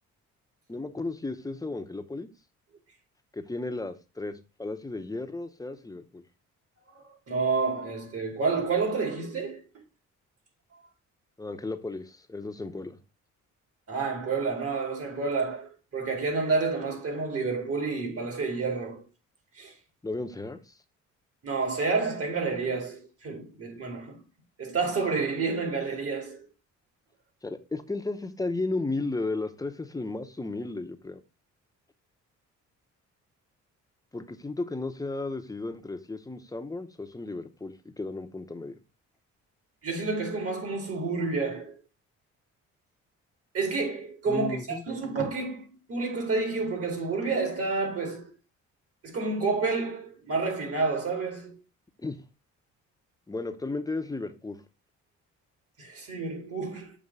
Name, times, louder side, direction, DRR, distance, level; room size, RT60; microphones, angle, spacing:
voice 1, 0.7-2.3 3.3-6.2 11.4-13.0 20.0-20.6 27.4-31.2 34.1-38.8 44.3-44.8 52.0-52.2 53.3-54.6, left 3 dB, 10° left, 0.8 m, -34 dB
voice 2, 6.9-9.6 13.9-19.0 19.6-19.7 21.4-24.2 24.6-26.5 39.8-41.8 43.5-48.3 49.0-51.6 55.8-56.9, right 4 dB, 50° right, 2.5 m, -29 dB
7.3 x 2.9 x 5.4 m
cardioid pair, 90°, 30 cm